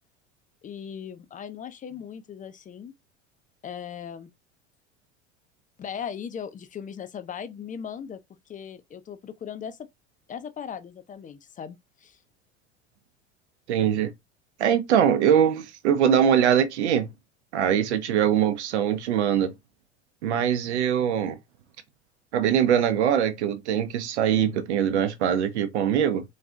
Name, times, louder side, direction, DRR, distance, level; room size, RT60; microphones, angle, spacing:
voice 1, 0.6-2.9 3.6-4.3 5.8-8.2 8.5-9.8 10.3-12.2, left 8 dB, 25° left, 0.5 m, -38 dB
voice 2, 13.7-14.1 14.6-17.1 17.5-19.5 20.2-21.4 22.3-26.2, right 9 dB, 75° right, 0.7 m, -22 dB
4.0 x 2.6 x 2.3 m
hypercardioid pair, 75°, 34 cm